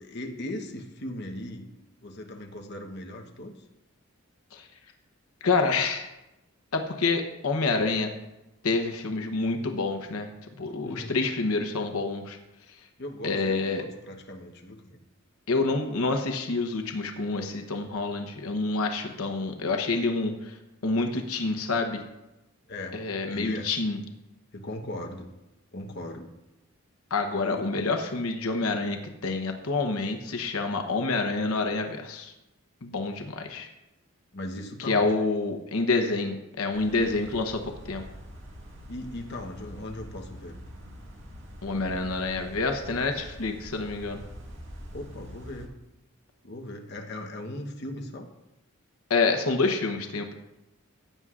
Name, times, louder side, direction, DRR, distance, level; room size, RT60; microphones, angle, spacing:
voice 1, 0.0-1.7 2.0-3.7 10.8-11.2 13.0-15.0 22.7-23.0 23.3-23.7 24.5-25.3 25.7-26.3 27.5-27.7 34.3-35.1 38.9-40.6 44.9-45.7 46.4-48.3, left 1 dB, 50° left, 2 dB, 1.0 m, -38 dB
voice 2, 5.4-6.1 6.7-8.1 8.6-10.3 10.6-12.4 13.2-13.8 15.5-20.6 20.8-22.0 22.9-24.0 27.1-32.3 32.8-33.7 34.9-38.0 41.6-44.2 49.1-50.3, left 3 dB, 85° left, 4 dB, 0.9 m, -27 dB
sound 1, 36.7-45.7, equal, 60° right, 1.9 m, -44 dB
15.5 x 9.3 x 2.5 m, 0.96 s
head